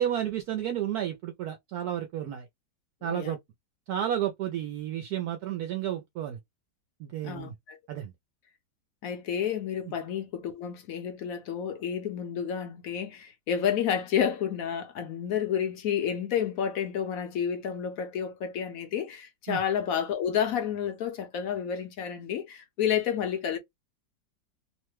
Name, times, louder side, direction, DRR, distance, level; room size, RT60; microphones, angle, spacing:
voice 1, 0.0-2.5 3.0-3.4 3.9-6.4 7.0-7.5 7.9-8.1 19.5-19.6, right 11 dB, 70° right, 1.0 m, -31 dB
voice 2, 3.0-3.4 7.2-7.8 9.0-23.6, left 8 dB, 60° left, 1.0 m, -30 dB
3.1 x 2.1 x 3.0 m
omnidirectional pair, 1.9 m